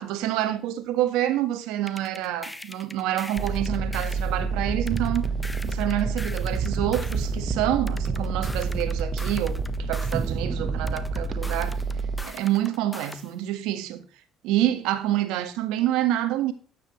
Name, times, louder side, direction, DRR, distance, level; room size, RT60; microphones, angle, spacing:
voice 1, 0.0-5.3 5.6-11.8 12.2-14.0 14.4-16.5, right 13 dB, 80° right, 1.4 m, -27 dB
sound 1, 1.9-4.3 4.9-7.3 7.9-10.3 10.9-13.3, left 1 dB, 10° left, 1.1 m, -41 dB
sound 2, 3.4-12.2, right 4 dB, 40° right, 1.1 m, -28 dB
12.5 x 9.8 x 3.1 m
supercardioid pair, 70°, 0 cm